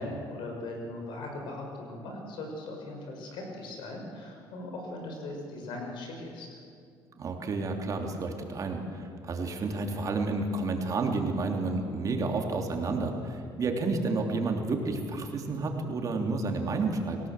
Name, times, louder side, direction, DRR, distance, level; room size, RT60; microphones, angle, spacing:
voice 1, 0.0-6.6, left 2 dB, 75° left, 1 dB, 6.0 m, -39 dB
voice 2, 7.2-17.2, right 3 dB, 45° right, 3 dB, 3.1 m, -30 dB
27.0 x 17.5 x 7.6 m, 2.4 s
cardioid pair, 110°, 8 cm